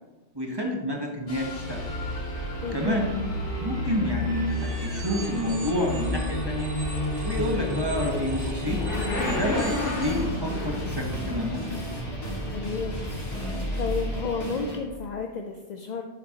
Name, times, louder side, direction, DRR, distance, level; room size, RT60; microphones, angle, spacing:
voice 1, 0.3-1.8 2.7-3.1 3.6-6.7 7.2-8.8 9.2-11.8, equal, 25° right, 0 dB, 1.0 m, -29 dB
Motorcycle / Accelerating revving vroom, 1.2-15.1, left 1 dB, 75° left, 1.7 m, -31 dB
sound 1, 1.3-14.8, equal, 30° left, 2.1 m, -38 dB
voice 2, 2.6-3.0 12.5-13.0 13.8-16.0, left 5 dB, 55° left, 4 dB, 0.5 m, -31 dB
sound 2, 4.5-10.3, right 3 dB, 50° right, 1.5 m, -44 dB
9.9 x 6.9 x 2.9 m, 1.2 s
omnidirectional pair, 1.2 m